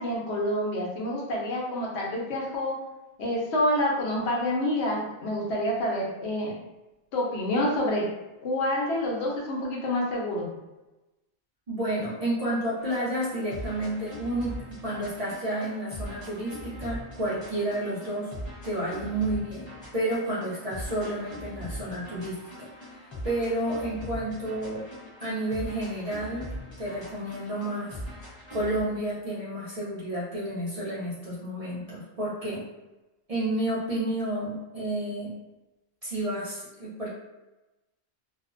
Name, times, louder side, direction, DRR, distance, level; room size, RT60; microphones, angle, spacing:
voice 1, 0.0-2.8 3.2-6.5 7.1-8.0 8.4-10.5, left 1 dB, 70° left, -3 dB, 0.9 m, -28 dB
voice 2, 11.7-18.3 18.6-22.4 22.8-24.8 25.2-26.5 26.8-28.0 28.5-32.6 33.3-35.3 36.0-37.1, right 1 dB, 45° right, -8 dB, 0.5 m, -31 dB
sound 1, 12.8-28.9, equal, 30° left, 0.6 m, -41 dB
2.5 x 2.1 x 2.4 m, 1.0 s
omnidirectional pair, 1.2 m